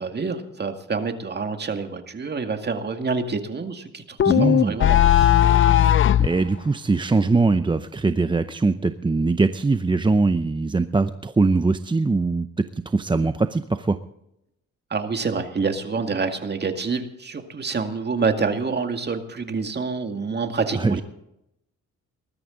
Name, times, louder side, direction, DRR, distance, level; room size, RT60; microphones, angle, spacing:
voice 1, 0.0-5.3 14.9-21.0, right 4 dB, 35° right, 6 dB, 2.1 m, -27 dB
sound 1, 4.2-6.3, left 11 dB, 40° left, 0.5 m, -16 dB
voice 2, 4.3-4.8 6.2-14.0 20.7-21.0, right 3 dB, 15° right, 10 dB, 0.7 m, -22 dB
20.0 x 13.0 x 3.9 m, 0.82 s
cardioid pair, 90°, 30 cm